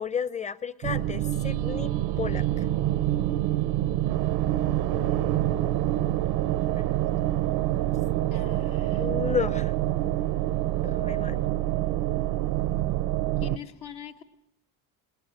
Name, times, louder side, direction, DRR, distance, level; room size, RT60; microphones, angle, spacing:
voice 1, 0.0-1.9 2.2-2.4 4.9-6.0 6.5-6.9 9.0-9.7 10.8-11.4, left 7 dB, 20° left, 18 dB, 0.7 m, -33 dB
sound 1, 0.8-13.6, right 14 dB, 80° right, 0.8 m, -26 dB
voice 2, 8.3-9.1 13.4-14.2, left 9 dB, 75° left, 5 dB, 1.7 m, -43 dB
20.0 x 20.0 x 7.9 m, 0.78 s
cardioid pair, 95°, 39 cm